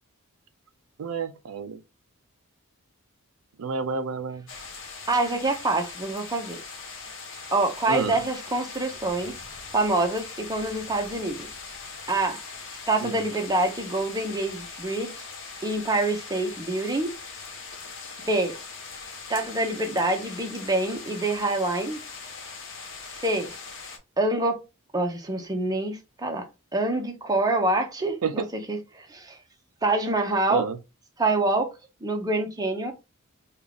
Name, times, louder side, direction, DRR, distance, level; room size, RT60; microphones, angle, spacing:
voice 1, 1.0-1.8 3.6-4.5 7.9-8.2 13.0-13.3 28.2-28.4 30.5-30.8, right 5 dB, 75° right, 0.4 m, -30 dB
sound 1, 4.5-24.0, left 4 dB, 60° left, 1.1 m, -41 dB
voice 2, 5.1-6.6 7.5-9.4 9.7-11.5 12.1-12.4 12.9-15.2 15.6-17.1 18.2-18.5 19.3-22.0 23.2-23.5 24.2-24.6 24.9-26.4 26.7-29.4 29.8-30.6 31.2-31.7 32.0-32.9, right 2 dB, 20° right, 0.7 m, -26 dB
3.5 x 2.4 x 3.4 m
head